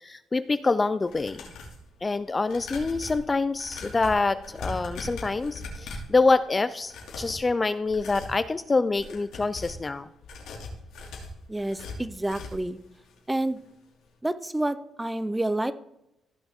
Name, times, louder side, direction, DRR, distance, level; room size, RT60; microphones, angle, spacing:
voice 1, 0.0-1.5 2.0-10.1, left 3 dB, 25° left, 14 dB, 0.4 m, -26 dB
sound 1, 1.0-1.8 2.4-6.2 6.8-7.5 7.9-8.4 8.9-9.8 10.2-12.7 13.1-13.2 13.5-13.6, left 2 dB, 85° left, 2.6 m, -40 dB
voice 2, 11.5-12.8 13.3-13.6 14.2-15.7, right 1 dB, 10° right, 14 dB, 0.7 m, -29 dB
15.5 x 5.9 x 3.7 m, 0.84 s
cardioid pair, 90°, 0 cm